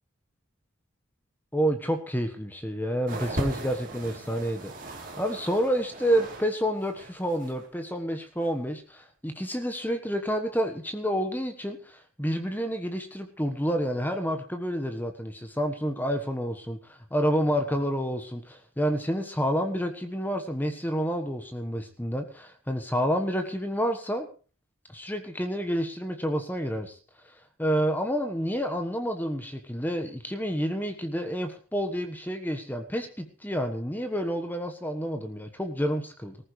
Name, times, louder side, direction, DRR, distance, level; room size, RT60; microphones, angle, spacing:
voice 1, 1.5-4.7 5.2-24.3 24.9-27.0 27.2-36.4, equal, 10° left, 6 dB, 1.3 m, -29 dB
sound 1, 3.1-6.5 6.8-7.7 8.4-8.5, right 1 dB, 40° right, 3.4 m, -38 dB
20.0 x 14.5 x 3.3 m, 0.37 s
head